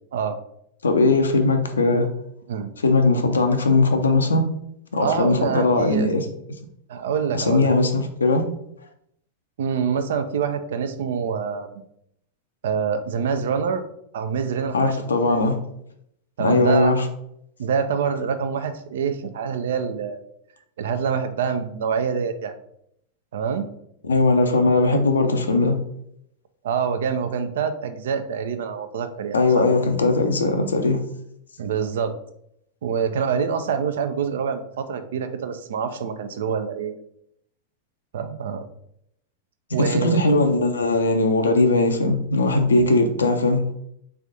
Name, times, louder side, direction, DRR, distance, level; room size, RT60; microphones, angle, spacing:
voice 1, 0.8-2.1 2.8-4.4 4.9-6.3 7.3-8.4 14.7-15.6 16.4-17.1 24.0-25.8 29.3-31.0 39.8-43.7, left 2 dB, 70° left, 6 dB, 0.6 m, -19 dB
voice 2, 5.0-6.1 6.9-7.7 9.6-11.7 12.6-13.8 14.1-15.0 15.3-15.5 16.4-16.9 17.6-20.2 20.8-22.6 23.3-23.7 26.6-29.8 31.6-32.1 32.8-37.0 38.1-38.6 39.7-40.2, right 6 dB, 60° right, 9 dB, 0.4 m, -26 dB
3.5 x 3.4 x 3.9 m, 0.73 s
figure-of-eight pair, 90°, 0 cm